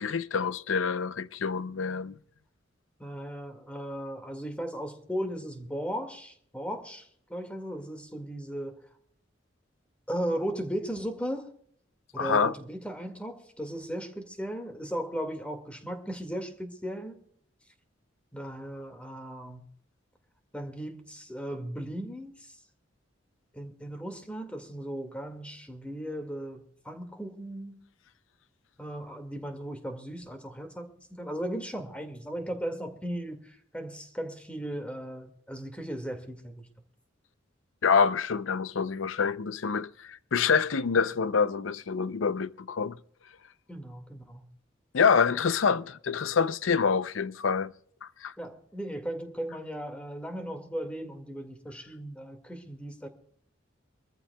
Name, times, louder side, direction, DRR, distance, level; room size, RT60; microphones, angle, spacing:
voice 1, 0.0-2.1 12.2-12.5 37.8-43.0 44.9-47.7 48.2-48.3, left 5 dB, 85° left, 0.6 m, -26 dB
voice 2, 3.0-8.9 10.1-11.5 12.1-17.2 18.3-19.6 20.5-22.5 23.5-27.8 28.8-30.9 31.2-36.7 43.7-44.5 48.4-53.1, equal, 5° left, 1.9 m, -36 dB
24.5 x 14.0 x 2.3 m
head